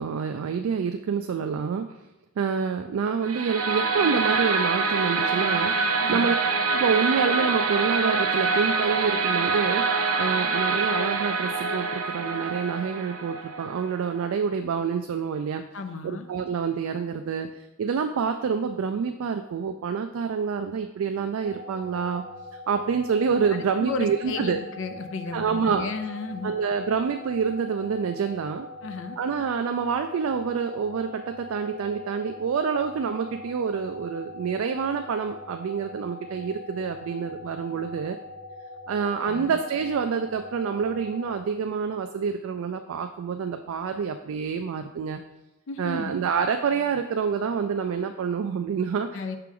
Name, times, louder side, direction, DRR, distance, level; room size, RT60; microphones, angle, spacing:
voice 1, 0.0-1.9 2.4-6.3 6.7-9.9 10.2-15.6 16.0-22.2 22.7-24.6 25.3-25.9 26.4-28.7 29.2-38.2 38.9-45.2 45.8-49.1, right 6 dB, 65° right, 7 dB, 0.3 m, -27 dB
sound 1, 3.2-14.3, right 4 dB, 85° right, 0.7 m, -25 dB
voice 2, 15.7-16.3 23.8-26.5 28.8-29.2 39.2-39.6 45.7-46.1 49.1-49.4, left 4 dB, 60° left, 8 dB, 0.5 m, -33 dB
sound 2, 21.4-41.4, left 2 dB, 10° right, 1.5 m, -42 dB
5.9 x 4.5 x 3.7 m, 0.98 s
head